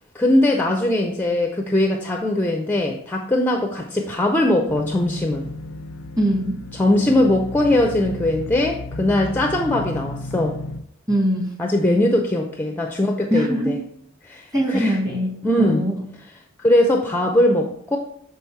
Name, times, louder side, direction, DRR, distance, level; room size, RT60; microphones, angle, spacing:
voice 1, 0.1-5.5 6.7-10.6 11.6-13.8 14.2-15.0 15.4-15.8 16.6-18.0, left 1 dB, 10° left, 3 dB, 0.5 m, -20 dB
sound 1, 4.7-10.8, left 1 dB, 85° left, 0.4 m, -33 dB
voice 2, 6.2-6.6 11.1-11.6 13.3-13.8 14.5-15.3 15.6-16.0, equal, 20° right, 1 dB, 1.5 m, -22 dB
7.0 x 3.9 x 4.5 m, 0.74 s
head